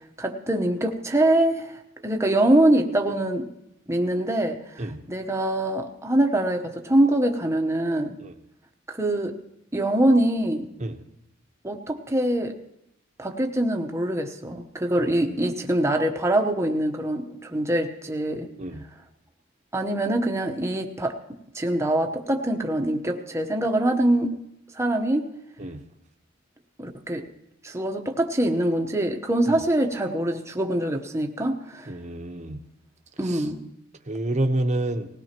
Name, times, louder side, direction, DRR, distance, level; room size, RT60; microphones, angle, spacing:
voice 1, 0.2-1.8 2.0-3.4 3.9-8.1 8.9-9.3 9.7-10.7 11.6-12.5 13.2-18.5 19.7-21.1 21.5-24.3 24.7-25.2 26.8-27.2 27.6-31.9 33.2-33.6, right 1 dB, 15° right, 4 dB, 1.0 m, -24 dB
voice 2, 15.0-15.4 18.6-18.8 25.6-25.8 31.9-32.6 33.2-33.5 34.1-35.1, right 1 dB, 35° right, 5 dB, 1.0 m, -29 dB
19.5 x 17.0 x 3.0 m, 0.82 s
head